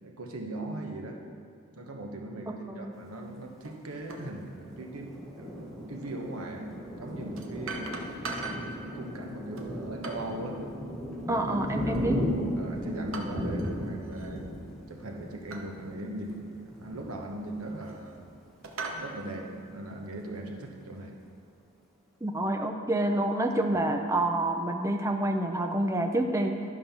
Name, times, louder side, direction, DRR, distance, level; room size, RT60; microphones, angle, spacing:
voice 1, 0.0-1.2 1.8-8.0 8.6-10.6 11.3-11.5 11.8-12.1 12.6-14.5 14.9-18.2 18.8-21.1, right 1 dB, 85° right, 1 dB, 1.2 m, -39 dB
sound 1, 3.6-3.8 4.1-4.3 6.0-6.1 7.4-8.7 9.5-10.4 11.9-12.3 13.1-13.8 14.0-14.3 15.5-15.7 16.3-16.4 17.4-18.2 18.6-19.1, right 3 dB, 70° right, 0.9 m, -40 dB
Thunder, 4.1-18.4 18.9-19.0 19.3-19.9, equal, ahead, 1.3 m, -36 dB
voice 2, 11.3-12.2 22.2-26.6, right 1 dB, 15° right, 4 dB, 0.5 m, -28 dB
11.0 x 5.3 x 5.7 m, 2.2 s
head